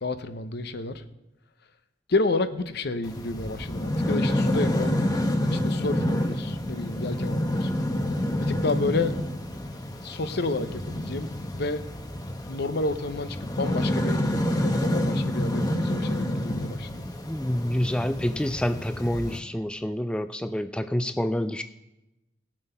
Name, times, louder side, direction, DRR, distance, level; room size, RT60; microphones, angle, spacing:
voice 1, 0.0-1.0 2.1-5.0 5.5-7.7 8.4-9.2 10.0-11.8 12.5-17.1, left 3 dB, 60° left, 11 dB, 0.8 m, -30 dB
sound 1, 3.0-19.4, left 1 dB, 20° left, 0.9 m, -28 dB
voice 2, 17.1-21.6, left 1 dB, 5° left, 10 dB, 0.3 m, -28 dB
17.5 x 7.5 x 5.6 m, 0.96 s
head